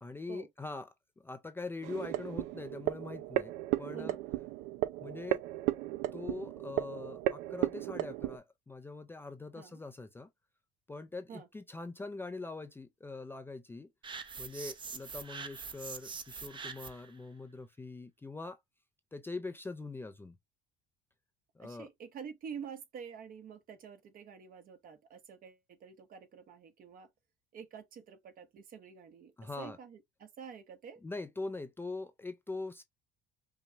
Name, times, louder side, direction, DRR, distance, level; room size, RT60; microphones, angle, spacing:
voice 1, 0.0-0.9 1.2-3.5 3.8-4.2 5.0-5.4 6.1-10.3 10.9-13.9 14.4-18.6 19.1-20.4 21.6-21.9 29.4-29.8 31.0-32.8, left 3 dB, 10° left, 0.4 m, -43 dB
sound 1, 1.8-8.4, right 15 dB, 85° right, 0.4 m, -35 dB
voice 2, 3.9-4.2 9.5-9.8 11.3-11.5 21.6-27.1 27.5-31.0, right 7 dB, 50° right, 1.1 m, -48 dB
sound 2, 14.0-17.1, right 5 dB, 25° right, 0.7 m, -44 dB
5.3 x 2.2 x 2.8 m
cardioid pair, 110°, 18 cm